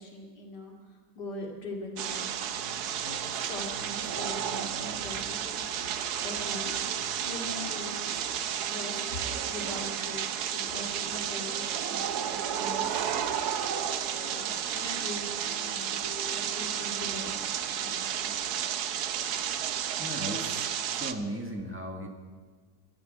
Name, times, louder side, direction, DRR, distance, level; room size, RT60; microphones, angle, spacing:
voice 1, 0.0-2.3 3.0-5.6 6.2-6.7 7.2-8.0 8.4-13.3 14.1-18.3, left 1 dB, 80° left, 0 dB, 3.1 m, -42 dB
sound 1, 1.9-8.9, equal, 55° right, 3.5 m, -53 dB
sound 2, 2.0-21.1, right 9 dB, 70° right, 1.2 m, -32 dB
sound 3, 5.2-18.0, left 1 dB, 15° left, 1.7 m, -50 dB
voice 2, 20.0-22.1, right 1 dB, 10° right, 1 dB, 1.4 m, -36 dB
12.5 x 10.5 x 9.2 m, 1.5 s
omnidirectional pair, 1.8 m